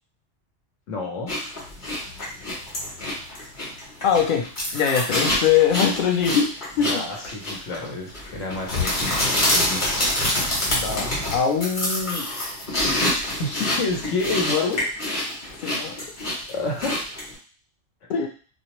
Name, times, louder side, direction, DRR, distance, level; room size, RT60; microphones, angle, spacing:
voice 1, 0.9-1.3 6.8-9.1 9.5-9.8 13.4-14.8 16.5-17.0, left 3 dB, 85° left, -1 dB, 1.1 m, -28 dB
sound 1, 1.3-17.3, left 1 dB, 45° left, 1.1 m, -26 dB
voice 2, 4.0-6.5 6.8-7.0 10.7-12.3 15.6-16.1 18.1-18.3, left 7 dB, 60° left, 1 dB, 0.5 m, -22 dB
2.5 x 2.0 x 2.9 m, 0.39 s
omnidirectional pair, 1.2 m